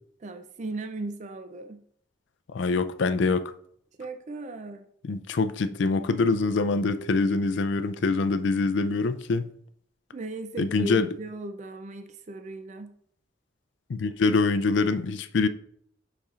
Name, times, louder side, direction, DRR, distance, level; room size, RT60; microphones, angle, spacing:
voice 1, 0.2-1.8 4.0-4.8 10.1-12.9, right 2 dB, 35° right, 0.4 m, -37 dB
voice 2, 2.5-3.5 5.0-9.5 10.6-11.1 13.9-15.5, left 3 dB, 65° left, 0.4 m, -24 dB
10.5 x 4.2 x 2.4 m
head